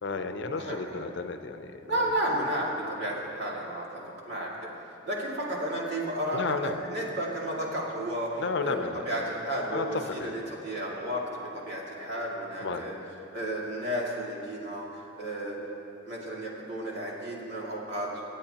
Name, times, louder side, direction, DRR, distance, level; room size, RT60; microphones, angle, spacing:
voice 1, 0.0-2.0 6.3-6.8 8.4-9.0 9.7-10.3 12.6-12.8, left 4 dB, 65° left, 8 dB, 0.6 m, -32 dB
voice 2, 1.9-3.8 4.3-8.8 9.0-12.9 13.3-15.6 16.1-18.1, right 1 dB, 60° right, -4 dB, 2.4 m, -32 dB
26.0 x 8.8 x 2.9 m, 2.8 s
head